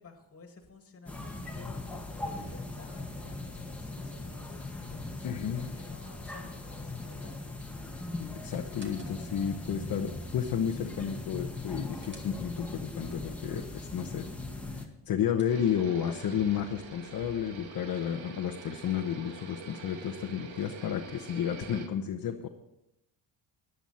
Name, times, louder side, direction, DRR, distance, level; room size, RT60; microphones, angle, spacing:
voice 1, 0.0-1.8 2.2-7.3, left 3 dB, 30° left, 4 dB, 2.3 m, -51 dB
sound 1, 1.1-14.9, left 2 dB, 5° left, 1.8 m, -40 dB
voice 2, 5.2-5.7 8.4-14.3 14.7-22.5, left 8 dB, 50° left, 4 dB, 1.0 m, -32 dB
sound 2, 8.6-9.5 11.5-12.8 14.8-16.0 18.0-19.1, right 2 dB, 25° right, 2.3 m, -58 dB
sound 3, 15.5-21.9, right 5 dB, 90° right, 2.1 m, -46 dB
18.0 x 11.0 x 4.3 m, 0.87 s
cardioid pair, 145°, 45 cm